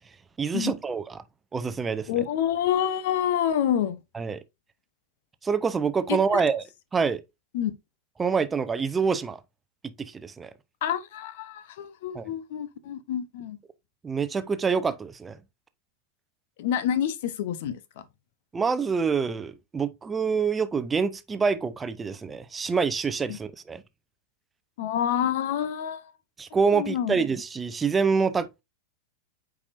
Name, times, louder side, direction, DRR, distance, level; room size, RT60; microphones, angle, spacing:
voice 1, 0.4-1.2 1.5-2.2 4.1-4.4 5.4-6.6 6.9-7.2 8.2-9.4 10.0-10.5 12.1-12.3 14.0-15.4 18.5-23.8 26.4-28.6, right 5 dB, 15° right, 0.7 m, -26 dB
voice 2, 2.1-4.0 6.1-6.4 7.5-7.7 10.8-13.6 16.6-18.0 23.3-23.4 24.8-26.1 26.7-27.2, left 10 dB, 55° left, 0.9 m, -28 dB
8.3 x 4.9 x 2.6 m
figure-of-eight pair, 90°, 0 cm